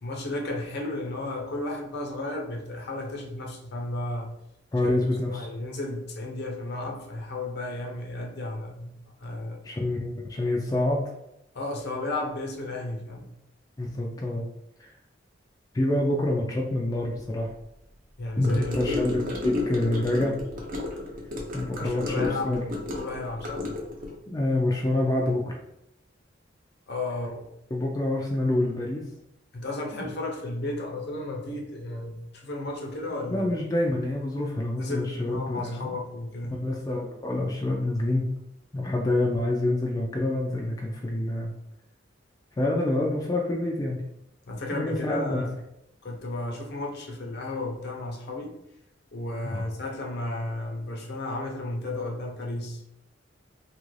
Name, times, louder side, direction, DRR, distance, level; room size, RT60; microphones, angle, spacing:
voice 1, 0.0-4.3 5.3-8.9 9.2-9.6 11.5-13.3 18.2-18.9 21.7-23.7 26.9-27.5 29.5-33.5 34.8-36.6 44.5-45.5 46.0-48.6 49.1-52.8, left 2 dB, 60° left, 1 dB, 0.6 m, -33 dB
voice 2, 4.7-5.5 9.6-11.1 13.8-14.5 14.8-15.0 15.7-17.5 18.4-20.3 21.5-22.6 24.3-25.6 27.7-29.0 29.9-30.1 33.3-35.9 36.6-38.2 38.7-41.6 42.6-44.0 44.7-45.4 49.4-49.6, left 1 dB, 20° left, -2 dB, 0.3 m, -27 dB
Gurgling / Car passing by / Sink (filling or washing), 18.4-24.1, left 2 dB, 45° right, 0.6 m, -32 dB
2.7 x 2.5 x 3.1 m, 0.83 s
head